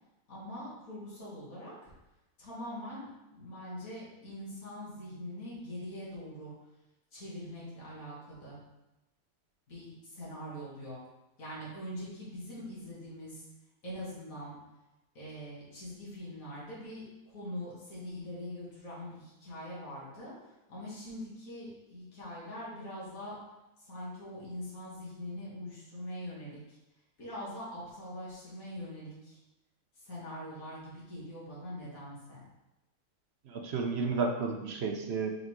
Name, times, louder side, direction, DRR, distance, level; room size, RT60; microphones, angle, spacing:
voice 1, 0.3-1.7 2.4-6.5 7.1-8.6 9.7-11.0 11.4-13.5 13.8-14.6 15.1-20.3 20.7-23.4 23.8-26.8 27.2-29.4 30.0-32.4, left 1 dB, 70° left, -7 dB, 2.4 m, -43 dB
voice 2, 33.5-35.3, right 4 dB, 55° right, 3 dB, 0.8 m, -32 dB
5.1 x 4.0 x 4.6 m, 0.99 s
omnidirectional pair, 1.5 m